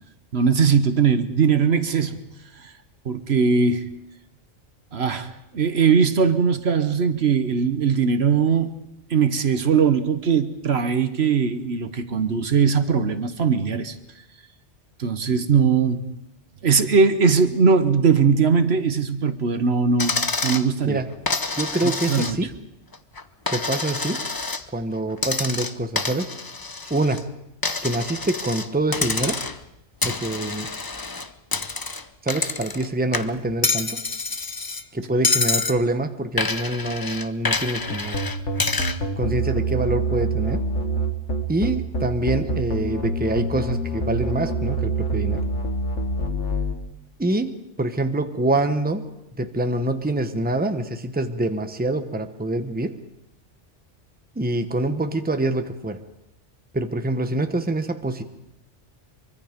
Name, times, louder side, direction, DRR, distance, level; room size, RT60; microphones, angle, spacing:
voice 1, 0.3-2.2 2.6-2.7 3.0-3.8 4.9-8.7 9.1-13.9 15.0-16.0 16.6-21.0 22.1-22.4, right 5 dB, 60° right, 1.3 m, -20 dB
Coin (dropping), 20.0-20.7 21.3-22.6 22.9-24.6 25.2-27.2 27.6-28.7 28.9-29.7 30.0-32.9 33.1-34.8 35.2-35.8 36.4-39.0, left 3 dB, 20° left, 0.6 m, -27 dB
voice 2, 21.6-22.5 23.5-24.2 24.7-26.3 26.9-27.3 27.8-29.4 30.0-30.7 32.2-34.0 34.9-38.1 39.2-40.6 41.5-45.4 47.2-49.0 49.4-53.0 54.3-56.0 56.7-58.2, right 2 dB, 10° right, 1.0 m, -25 dB
sound 1, 37.9-46.7, right 2 dB, 75° left, 2.2 m, -25 dB
24.0 x 23.5 x 5.2 m
omnidirectional pair, 1.2 m